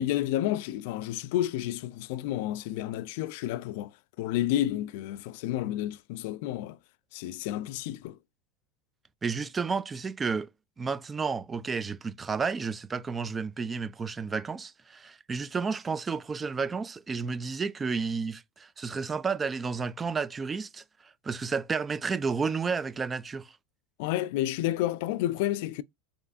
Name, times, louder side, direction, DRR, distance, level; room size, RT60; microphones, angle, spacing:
voice 1, 0.0-3.9 4.2-6.8 7.1-8.2 24.0-25.8, left 13 dB, 70° left, 0.3 m, -30 dB
voice 2, 9.2-10.5 10.8-20.8 21.2-23.5, right 5 dB, 20° right, 0.3 m, -31 dB
4.1 x 3.3 x 2.4 m
supercardioid pair, 125°, 0 cm